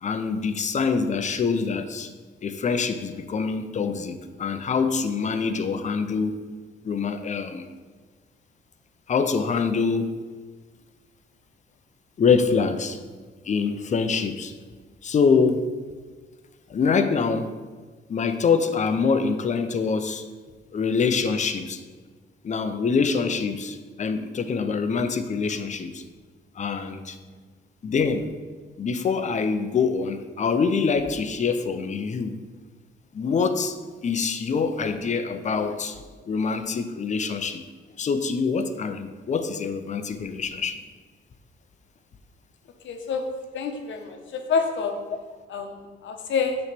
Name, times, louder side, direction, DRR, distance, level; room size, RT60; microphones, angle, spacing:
voice 1, 0.0-2.1 2.4-6.4 6.8-7.7 9.1-10.1 12.2-13.0 13.4-14.5 15.0-15.7 16.7-17.5 18.1-20.2 20.7-21.8 22.4-26.0 26.6-27.2 27.8-28.3 28.8-32.4 33.1-33.7 34.0-37.6 38.0-40.8, left 5 dB, 35° left, 9 dB, 0.6 m, -25 dB
voice 2, 42.8-43.2 43.5-44.9 45.5-46.6, left 5 dB, 70° left, 5 dB, 0.9 m, -27 dB
7.0 x 3.2 x 6.0 m, 1.4 s
cardioid pair, 90°, 20 cm